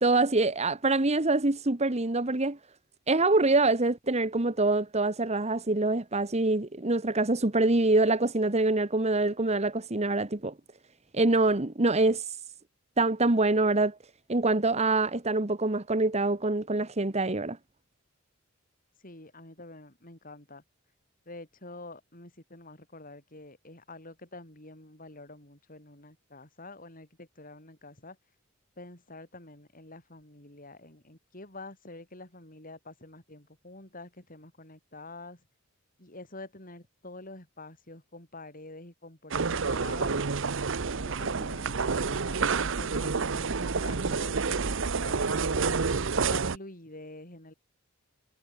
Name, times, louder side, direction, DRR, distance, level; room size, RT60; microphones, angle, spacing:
voice 1, 0.0-2.6 3.1-10.5 11.1-12.4 13.0-14.0 14.3-17.6, right 2 dB, 30° right, 1.4 m, -25 dB
voice 2, 19.0-20.6 21.3-28.2 28.8-35.4 36.0-40.2 41.0-45.8 46.3-47.5, left 2 dB, 40° left, 7.3 m, -47 dB
sound 1, 39.3-46.6, right 5 dB, 65° right, 0.8 m, -29 dB
head